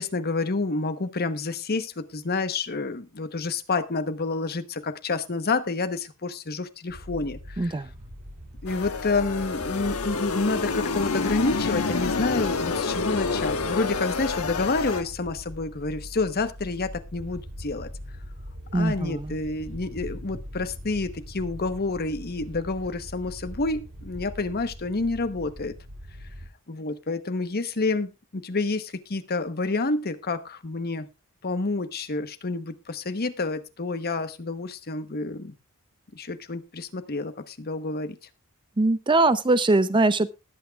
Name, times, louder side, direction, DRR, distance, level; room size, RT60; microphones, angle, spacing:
voice 1, 0.0-7.8 8.6-17.9 18.7-25.7 26.7-31.1 31.4-35.5 36.1-38.2, left 3 dB, 45° left, 1.0 m, -29 dB
sound 1, 6.9-26.5, equal, 65° right, 2.6 m, -41 dB
voice 2, 7.6-7.9 18.7-19.3 38.8-40.3, right 2 dB, 20° right, 0.5 m, -22 dB
sound 2, 8.7-15.0, left 4 dB, 80° left, 1.2 m, -28 dB
20.5 x 8.3 x 2.3 m
head